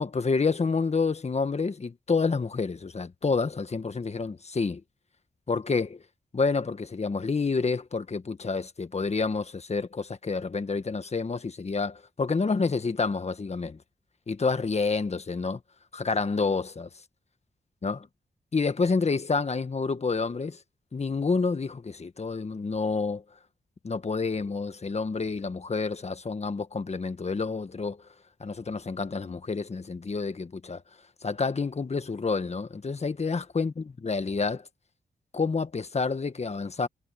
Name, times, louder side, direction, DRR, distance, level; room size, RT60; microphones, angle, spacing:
voice 1, 0.0-4.8 5.5-6.0 6.3-13.8 14.3-15.6 15.9-16.9 17.8-18.0 18.5-20.6 20.9-23.2 23.8-28.0 28.4-30.8 31.2-33.7 34.0-34.7 35.3-36.9, left 4 dB, 40° left, 1.5 m, -28 dB
cardioid pair, 70°, 17 cm